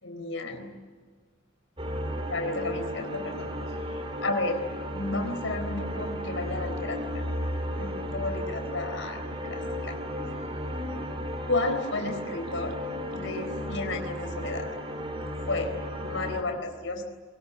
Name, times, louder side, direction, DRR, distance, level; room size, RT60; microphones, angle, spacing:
voice 1, 0.0-0.7 2.3-3.5 3.9-4.6 4.8-7.2 7.6-9.2 9.4-10.0 11.5-12.8 13.1-14.7 15.5-17.0, left 2 dB, 80° left, 4 dB, 4.2 m, -32 dB
sound 1, 1.8-16.4, equal, 30° right, 3.2 m, -34 dB
23.5 x 23.0 x 9.7 m, 1.5 s
head